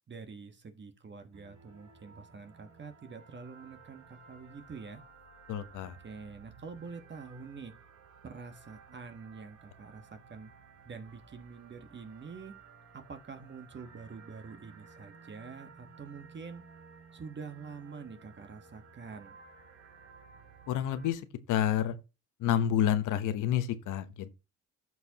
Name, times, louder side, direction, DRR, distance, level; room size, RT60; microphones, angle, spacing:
voice 1, 0.1-5.0 6.0-7.7 8.2-10.5 10.8-12.5 12.9-16.6 17.1-19.4, right 5 dB, 35° right, 1.3 m, -46 dB
sound 1, 1.3-21.1, right 5 dB, 75° right, 3.6 m, -56 dB
voice 2, 5.5-6.0 20.7-21.2 21.5-22.0 22.4-24.3, left 10 dB, 85° left, 1.0 m, -29 dB
14.0 x 4.8 x 2.9 m
cardioid pair, 90°, 30 cm